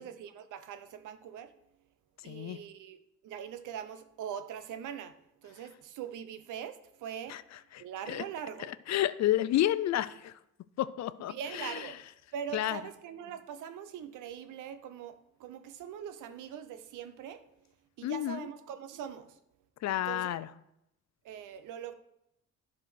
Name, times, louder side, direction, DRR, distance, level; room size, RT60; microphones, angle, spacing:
voice 1, 0.0-1.5 2.2-5.2 5.4-7.4 7.8-8.7 11.3-12.0 12.3-17.4 18.0-19.4 20.0-20.4 21.2-21.9, right 8 dB, 85° right, 10 dB, 0.8 m, -42 dB
voice 2, 2.2-2.6 7.3-7.4 7.7-8.2 8.7-10.3 10.8-11.8 12.5-12.8 18.0-18.5 19.8-20.5, left 13 dB, 60° left, 16 dB, 0.5 m, -31 dB
10.5 x 4.3 x 6.2 m, 0.83 s
cardioid pair, 90°, 30 cm